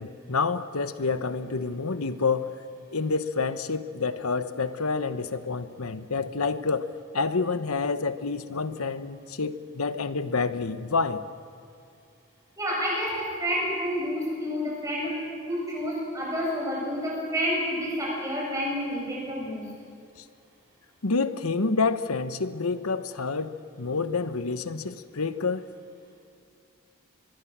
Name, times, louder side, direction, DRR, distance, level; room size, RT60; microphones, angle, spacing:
voice 1, 0.0-2.5 2.9-6.9 7.1-11.2 21.0-25.7, left 4 dB, 90° left, 11 dB, 1.0 m, -28 dB
voice 2, 12.6-15.1 15.5-19.7, equal, 15° right, -4 dB, 7.7 m, -29 dB
23.5 x 22.5 x 7.4 m, 2.4 s
head